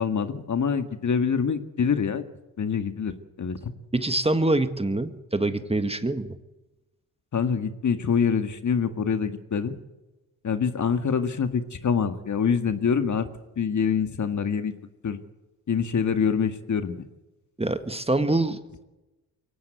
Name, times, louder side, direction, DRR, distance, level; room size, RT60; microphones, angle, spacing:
voice 1, 0.0-2.2 2.6-3.1 3.4-3.7 7.3-9.8 10.4-13.3 13.6-14.7 15.0-15.2 15.7-17.1, left 6 dB, 40° left, 9 dB, 1.9 m, -25 dB
voice 2, 3.9-6.4 17.6-18.6, right 2 dB, 15° right, 10 dB, 1.8 m, -25 dB
23.0 x 17.5 x 8.1 m, 1.0 s
hypercardioid pair, 50°, 43 cm